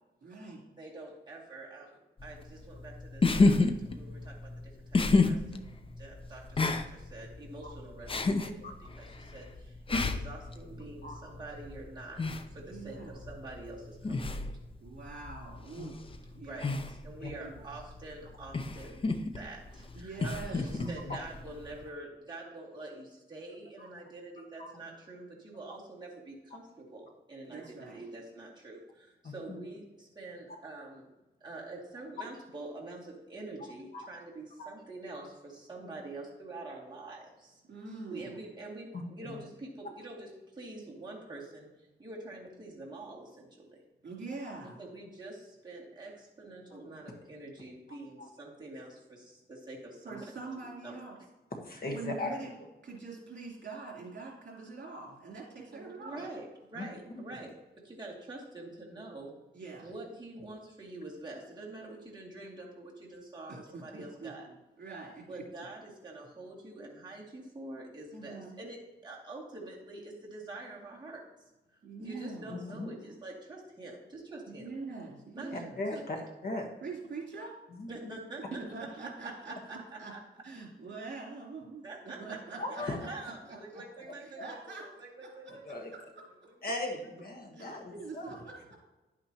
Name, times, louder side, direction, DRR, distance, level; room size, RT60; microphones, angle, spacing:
voice 1, 0.2-0.7 1.8-1.9 12.6-13.2 14.8-16.0 16.3-16.7 17.3-17.6 19.9-20.8 27.5-28.0 37.7-38.4 44.0-44.8 50.0-51.2 51.9-52.5 52.8-56.3 59.5-59.9 63.5-65.4 68.1-68.6 71.8-72.5 74.4-75.8 76.8-77.5 78.2-80.1 80.4-83.8 84.2-84.9 85.2-86.5 87.5-88.8, right 4 dB, 65° right, -3 dB, 3.2 m, -44 dB
voice 2, 0.8-1.9 2.2-4.3 4.9-5.4 6.0-9.5 10.1-12.2 12.5-14.4 16.4-16.7 17.0-19.0 19.3-28.8 29.2-31.0 31.4-37.5 38.1-38.9 39.2-41.7 42.0-43.5 44.8-50.3 50.8-51.0 55.7-57.5 57.8-59.3 59.8-64.5 65.3-71.2 72.0-74.7 75.3-75.5 75.9-76.2 77.9-78.6 78.9-79.8 80.1-80.2 81.8-82.4 82.7-85.9, right 2 dB, 25° right, -5 dB, 2.3 m, -46 dB
sound 1, 2.2-21.9, left 3 dB, 30° left, 0.5 m, -32 dB
voice 3, 20.8-21.2 24.6-24.7 29.2-29.6 33.9-34.1 34.6-34.7 35.1-35.3 39.2-39.4 48.2-48.3 51.6-52.3 56.8-56.9 57.1-57.2 72.5-72.9 75.5-76.2 76.4-76.7 77.7-78.1 82.6-83.2 84.1-84.2 85.6-85.9 86.6-88.3, left 2 dB, 55° left, 3 dB, 1.3 m, -38 dB
10.5 x 8.6 x 2.9 m, 1.1 s
wide cardioid pair, 140°, 19 cm